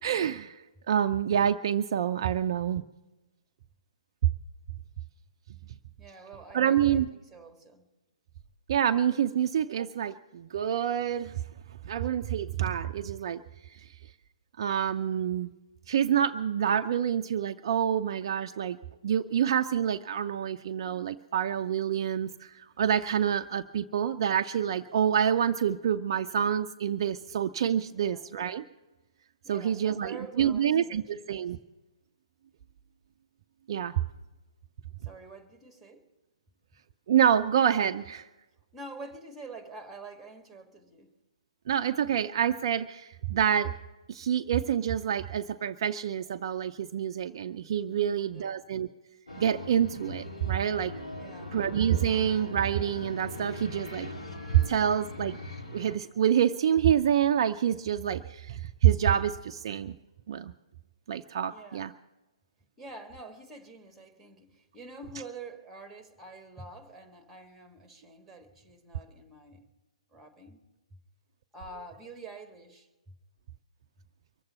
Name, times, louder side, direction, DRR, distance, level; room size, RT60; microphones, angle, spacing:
voice 1, 0.0-2.8 6.5-7.1 8.7-11.3 11.9-13.4 14.6-15.5 15.9-18.8 19.0-28.6 29.5-31.6 33.7-33.9 37.1-38.3 41.7-43.7 44.1-48.9 49.4-50.9 51.5-54.1 54.5-55.4 55.7-60.0 60.3-60.5 61.1-61.9, right 9 dB, 45° right, 8 dB, 0.4 m, -27 dB
voice 2, 6.0-7.8 27.9-28.3 29.4-31.5 35.0-36.1 38.7-41.1 47.9-48.6 51.1-51.6 61.4-61.9 62.8-69.7 70.1-70.6 70.9-71.0 71.5-73.2, right 3 dB, 5° right, 7 dB, 1.5 m, -47 dB
sound 1, 49.3-56.0, left 2 dB, 70° left, 2.4 m, -40 dB
23.5 x 7.9 x 6.8 m, 1.1 s
figure-of-eight pair, 130°, 3 cm